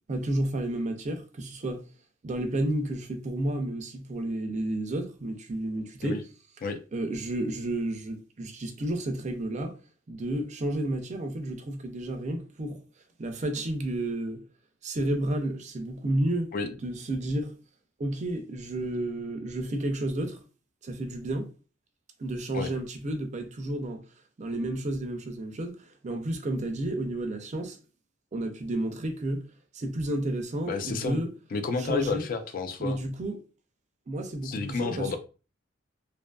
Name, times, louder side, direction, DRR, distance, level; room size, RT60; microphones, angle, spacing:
voice 1, 0.1-1.8 2.2-6.2 6.9-9.8 10.1-12.8 13.2-14.4 14.8-16.5 16.8-17.5 18.0-20.4 20.8-21.5 22.2-24.0 24.4-27.8 28.3-29.4 29.7-31.3 31.8-32.2 32.8-33.4 34.1-35.2, right 1 dB, 40° right, 0.4 m, -31 dB
voice 2, 30.7-31.2 31.5-33.0 34.4-35.2, left 4 dB, 45° left, 0.4 m, -30 dB
2.6 x 2.4 x 2.2 m
head